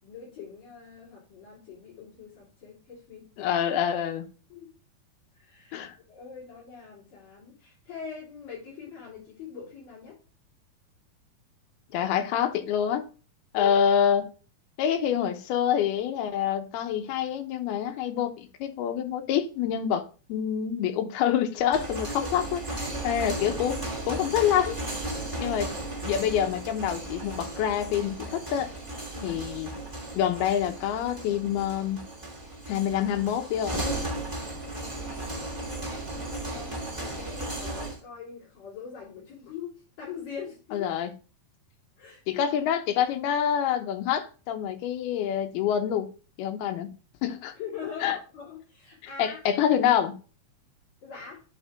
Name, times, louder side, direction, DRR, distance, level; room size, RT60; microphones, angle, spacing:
voice 1, 0.0-3.5 4.5-4.7 5.3-5.8 6.1-10.2 13.6-13.8 22.2-22.3 22.8-23.1 25.3-25.6 29.1-29.4 34.6-35.5 36.3-40.9 42.0-42.5 47.6-49.4 51.0-51.4, left 7 dB, 60° left, 4.8 m, -42 dB
voice 2, 3.4-4.3 5.7-5.9 11.9-13.1 13.5-14.3 14.8-24.8 25.4-25.7 26.0-28.7 29.2-29.7 30.1-32.0 32.7-33.9 40.7-41.1 42.3-46.1 46.4-46.9 47.2-47.5 48.0-48.2 49.2-50.2, left 9 dB, 85° left, 2.8 m, -26 dB
sound 1, 21.6-38.0, right 2 dB, 10° right, 1.5 m, -35 dB
9.7 x 3.7 x 3.6 m
omnidirectional pair, 4.4 m